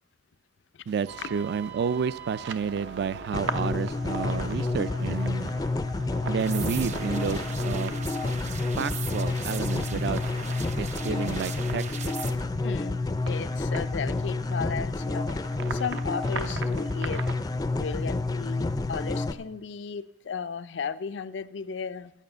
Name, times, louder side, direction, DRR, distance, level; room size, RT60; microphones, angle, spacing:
voice 1, 0.9-5.5 6.3-7.9 8.8-10.2 10.8-12.1, right 6 dB, 65° right, 18 dB, 0.3 m, -30 dB
sound 1, 1.1-17.4, right 4 dB, 85° right, 0.8 m, -41 dB
sound 2, 3.3-19.3, left 2 dB, 20° left, 0.4 m, -29 dB
sound 3, 6.4-12.3, right 7 dB, 40° right, 0.7 m, -40 dB
voice 2, 12.6-17.2 17.7-22.1, left 6 dB, 80° left, 13 dB, 0.4 m, -35 dB
10.5 x 9.1 x 6.7 m, 0.97 s
head